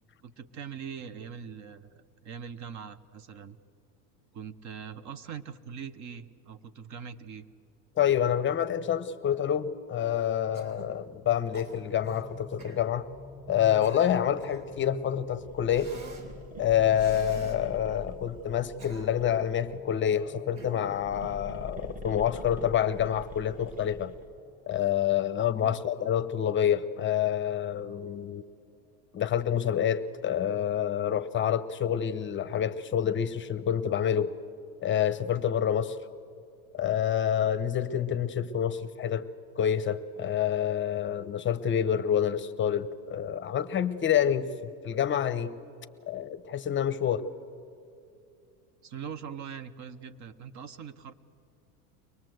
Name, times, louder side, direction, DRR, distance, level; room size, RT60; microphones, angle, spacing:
voice 1, 0.2-3.6 4.3-7.5 25.6-25.8 48.8-51.1, right 7 dB, 45° right, 13 dB, 1.0 m, -42 dB
voice 2, 8.0-13.1 13.5-15.9 16.6-24.1 24.7-28.4 29.1-34.3 34.8-36.0 36.7-39.3 39.6-45.6 46.1-47.2, left 9 dB, 30° left, 12 dB, 0.8 m, -27 dB
sound 1, 10.1-24.7, left 2 dB, ahead, 1.6 m, -50 dB
Cough, 10.5-11.0 11.5-12.2 12.6-12.8 13.5-14.7 15.7-16.3 16.9-17.6 18.5-19.4 20.6-21.0, right 3 dB, 75° right, 3.9 m, -48 dB
sound 2, 15.3-19.8 20.7-24.4, left 1 dB, 20° right, 1.4 m, -44 dB
24.0 x 19.0 x 7.8 m, 2.6 s
supercardioid pair, 115°, 41 cm